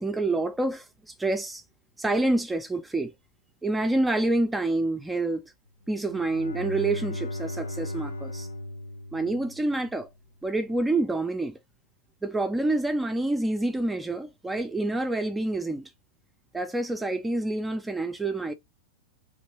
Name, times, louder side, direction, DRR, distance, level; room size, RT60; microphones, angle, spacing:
voice 1, 0.0-1.6 2.0-3.1 3.6-5.4 5.9-8.5 9.1-10.1 10.4-11.6 12.2-15.9 16.5-18.5, right 2 dB, 10° right, 0.3 m, -27 dB
Bowed string instrument, 5.9-10.0, left 1 dB, 80° left, 0.7 m, -36 dB
2.9 x 2.7 x 2.9 m
figure-of-eight pair, 90°, 0 cm